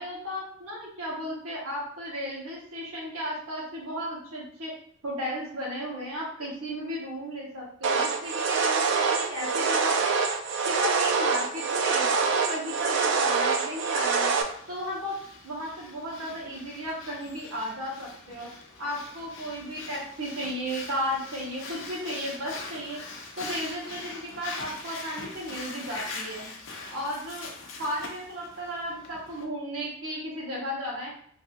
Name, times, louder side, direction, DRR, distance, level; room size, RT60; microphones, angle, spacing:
voice 1, 0.0-4.7 5.0-10.3 10.6-14.4 14.7-15.2 15.4-18.5 18.8-23.0 23.4-26.5 26.9-27.5 27.8-31.1, equal, 85° right, -4 dB, 1.2 m, -34 dB
sound 1, 7.8-14.4, right 5 dB, 55° right, 0.3 m, -25 dB
Breathing, 14.4-29.4, left 3 dB, 60° left, 0.5 m, -42 dB
3.1 x 2.6 x 2.6 m, 0.64 s
head